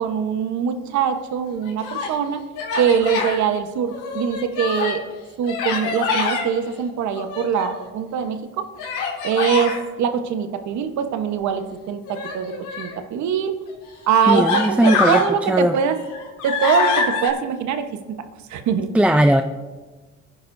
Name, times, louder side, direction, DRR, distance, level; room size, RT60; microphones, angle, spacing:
voice 1, 0.0-2.4 2.8-5.0 5.4-8.6 9.2-13.5 14.1-16.0 16.4-17.9 18.5-18.9, right 7 dB, 70° right, 8 dB, 1.2 m, -23 dB
Human voice, 1.5-2.1 2.6-3.4 3.9-5.0 5.4-6.5 7.1-7.9 8.8-9.8 12.0-13.0 13.7-13.8 14.2-15.3 15.8-17.3, left 4 dB, 85° left, 3.2 m, -25 dB
voice 2, 14.3-15.2 15.5-15.8 18.9-19.4, right 1 dB, 5° right, 6 dB, 0.4 m, -17 dB
21.5 x 10.0 x 2.7 m, 1.3 s
cardioid pair, 95°, 30 cm